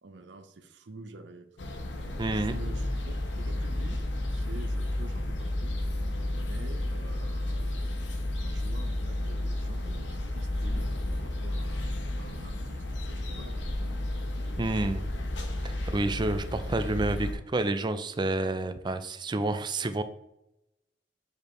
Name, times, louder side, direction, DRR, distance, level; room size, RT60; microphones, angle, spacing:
voice 1, 0.0-1.5 1.9-4.0 4.3-5.8 6.3-7.8 8.4-14.0, right 2 dB, 75° right, 8 dB, 0.6 m, -48 dB
sound 1, 1.6-17.3, left 1 dB, 85° left, 0.9 m, -32 dB
voice 2, 2.2-2.6 14.6-15.0 15.6-20.0, right 2 dB, 25° right, 10 dB, 0.4 m, -29 dB
6.6 x 5.2 x 3.1 m, 0.86 s
head